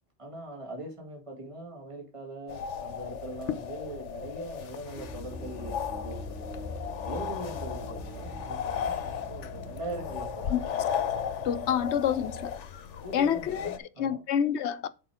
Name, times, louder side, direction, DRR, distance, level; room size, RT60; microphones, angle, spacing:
voice 1, 0.2-6.5 7.1-10.5 11.6-11.7 13.0-14.2, right 1 dB, 25° right, 2.3 m, -41 dB
sound 1, 2.5-13.8, left 8 dB, 90° left, 1.1 m, -36 dB
sound 2, 4.9-12.5, left 1 dB, 50° right, 3.2 m, -42 dB
voice 2, 11.4-12.6 13.1-14.9, left 9 dB, 75° left, 0.9 m, -28 dB
7.9 x 4.8 x 4.9 m
omnidirectional pair, 1.2 m